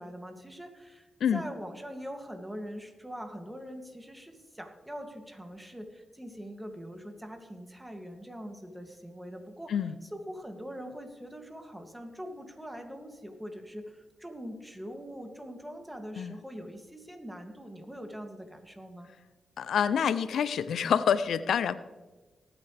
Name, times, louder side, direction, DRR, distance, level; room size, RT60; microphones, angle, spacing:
voice 1, 0.0-19.1, equal, 10° right, 4 dB, 2.3 m, -43 dB
voice 2, 19.6-21.7, left 8 dB, 85° left, 15 dB, 0.4 m, -27 dB
19.0 x 8.9 x 3.3 m, 1.2 s
cardioid pair, 50°, 0 cm